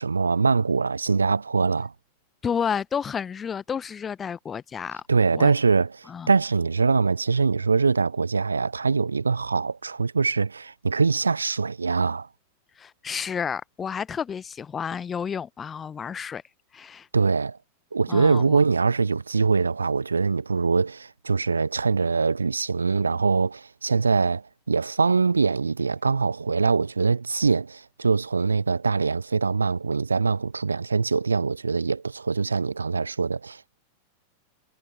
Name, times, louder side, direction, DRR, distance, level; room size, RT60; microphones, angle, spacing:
voice 1, 0.0-1.9 5.1-12.3 17.1-17.6 17.9-24.4 24.7-33.8, right 4 dB, 75° right, 0.5 m, -23 dB
voice 2, 2.4-5.0 5.3-5.5 6.1-6.3 12.8-16.4 16.7-17.1 18.1-18.6, left 7 dB, 20° left, 1.1 m, -31 dB
figure-of-eight pair, 90°, 0 cm